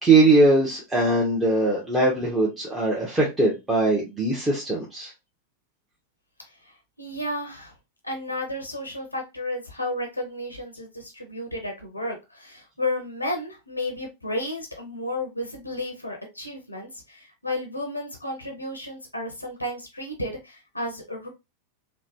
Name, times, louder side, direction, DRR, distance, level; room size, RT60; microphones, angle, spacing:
voice 1, 0.0-5.1, right 2 dB, 10° right, -4 dB, 0.8 m, -21 dB
voice 2, 6.6-7.7 8.0-21.3, left 1 dB, 85° left, 3 dB, 0.6 m, -32 dB
3.1 x 2.1 x 2.6 m, 0.24 s
figure-of-eight pair, 90°, 0 cm